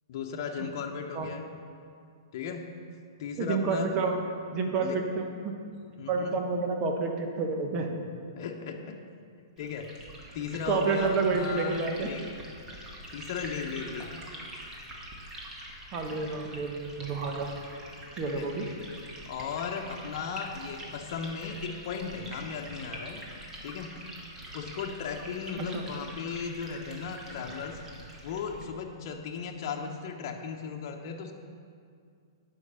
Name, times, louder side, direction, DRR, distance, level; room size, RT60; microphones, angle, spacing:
voice 1, 0.1-1.5 2.3-2.7 3.2-3.9 4.8-5.0 6.0-6.4 8.4-9.0 9.6-9.9 10.3-12.2 13.1-14.2 15.6-15.9 18.2-18.5 19.2-23.2 23.6-23.9 24.5-27.8 28.2-31.3, left 6 dB, 50° left, 2 dB, 1.0 m, -36 dB
voice 2, 3.4-4.2 4.5-5.6 6.1-8.0 10.6-12.1 15.9-17.5 18.1-18.7 25.2-25.3 25.6-25.8, right 4 dB, 35° right, 3 dB, 1.4 m, -29 dB
Liquid, 9.6-28.7, right 1 dB, 20° right, 1.8 m, -45 dB
9.8 x 5.9 x 6.9 m, 2.3 s
hypercardioid pair, 125°, 2 cm